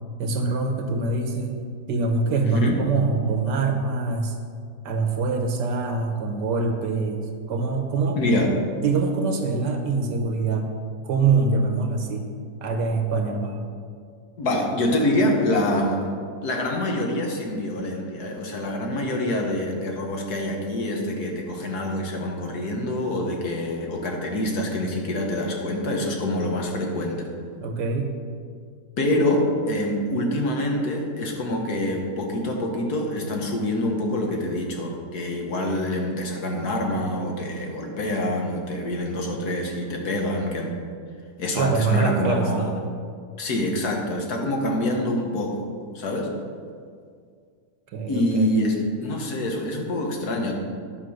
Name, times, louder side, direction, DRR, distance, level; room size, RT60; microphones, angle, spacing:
voice 1, 0.2-1.6 1.9-4.4 4.8-8.2 8.8-10.7 11.0-12.3 12.6-13.6 27.6-28.1 41.5-42.7 47.9-48.6, right 4 dB, 85° right, 4 dB, 1.7 m, -24 dB
voice 2, 2.4-2.8 8.1-8.5 14.4-16.0 16.4-27.3 29.0-40.7 41.4-42.7 43.4-45.6 46.0-46.3 48.1-50.6, left 1 dB, 65° left, 1 dB, 1.9 m, -26 dB
10.0 x 6.0 x 6.4 m, 2.2 s
omnidirectional pair, 1.8 m